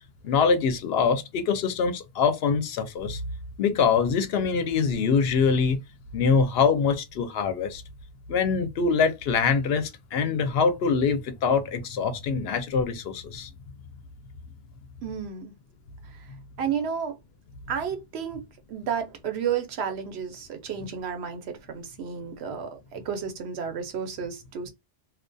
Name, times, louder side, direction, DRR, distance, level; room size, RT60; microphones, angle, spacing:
voice 1, 0.2-3.2 3.6-5.8 6.1-7.8 8.3-13.5, left 5 dB, 75° left, 0.8 m, -24 dB
voice 2, 15.0-15.5 16.1-16.2 16.6-17.2 17.7-18.4 18.7-24.7, right 7 dB, 85° right, 0.9 m, -32 dB
2.4 x 2.2 x 2.5 m
omnidirectional pair, 1.1 m